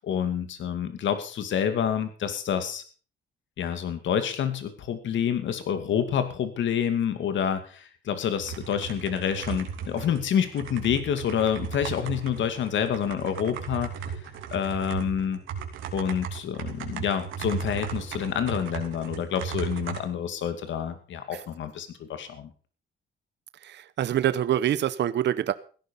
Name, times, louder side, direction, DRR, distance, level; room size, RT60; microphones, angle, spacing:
voice 1, 0.0-2.8 3.6-13.9 14.5-15.4 15.9-22.5, left 8 dB, 70° left, 9 dB, 2.4 m, -28 dB
sound 1, 8.4-20.0, right 7 dB, 80° right, 2.9 m, -36 dB
voice 2, 23.6-25.5, right 11 dB, 60° right, 15 dB, 0.8 m, -25 dB
16.0 x 11.0 x 5.5 m, 0.40 s
cardioid pair, 90°, 20 cm